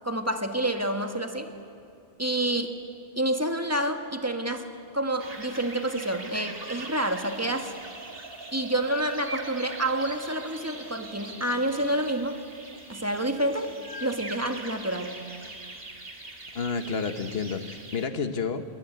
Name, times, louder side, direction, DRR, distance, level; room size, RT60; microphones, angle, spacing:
voice 1, 0.0-1.5 2.2-2.8 3.1-7.7 8.5-12.4 12.9-13.7 14.0-15.2, right 1 dB, 15° right, 5 dB, 1.6 m, -28 dB
sound 1, 5.2-18.0, right 2 dB, 60° right, 2.3 m, -42 dB
voice 2, 16.5-18.6, left 5 dB, 65° left, 9 dB, 1.5 m, -30 dB
25.5 x 22.0 x 9.4 m, 2.5 s
omnidirectional pair, 1.1 m